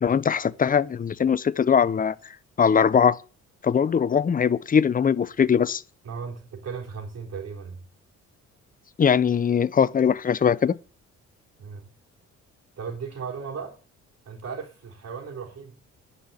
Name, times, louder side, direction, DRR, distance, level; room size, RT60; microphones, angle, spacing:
voice 1, 0.0-2.2 2.6-3.2 3.6-5.8 9.0-10.7, left 7 dB, 30° left, 0.6 m, -21 dB
voice 2, 6.0-7.8 11.6-11.9 12.8-13.8 14.3-15.7, right 6 dB, 55° right, 3.6 m, -36 dB
10.0 x 5.7 x 8.2 m
cardioid pair, 90°, 30 cm